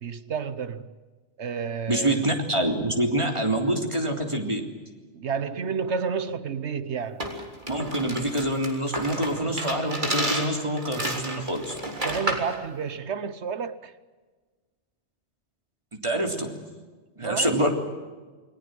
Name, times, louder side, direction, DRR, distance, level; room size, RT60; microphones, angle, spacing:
voice 1, 0.0-0.9 1.4-2.2 5.1-7.3 12.0-13.9 17.2-17.7, right 6 dB, 75° right, 1.3 m, -31 dB
voice 2, 1.9-4.6 7.7-11.7 16.0-16.5 17.2-17.7, right 1 dB, 25° right, 3.5 m, -26 dB
sound 1, 7.2-12.5, right 1 dB, 45° right, 3.6 m, -31 dB
29.0 x 20.5 x 7.8 m
omnidirectional pair, 1.2 m